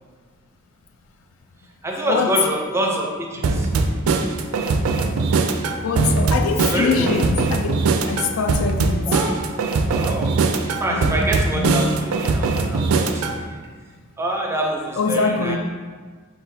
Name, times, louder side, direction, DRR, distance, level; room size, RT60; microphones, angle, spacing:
voice 1, 1.8-3.7 6.5-7.3 9.1-9.5 9.9-13.6 14.2-15.6, right 1 dB, 10° right, 0.5 m, -26 dB
sound 1, 3.4-13.4, right 3 dB, 80° right, 0.4 m, -21 dB
voice 2, 5.8-7.8 8.1-9.1 10.9-11.1 11.5-12.0 15.0-15.6, left 5 dB, 70° left, 0.4 m, -23 dB
4.6 x 3.9 x 2.7 m
head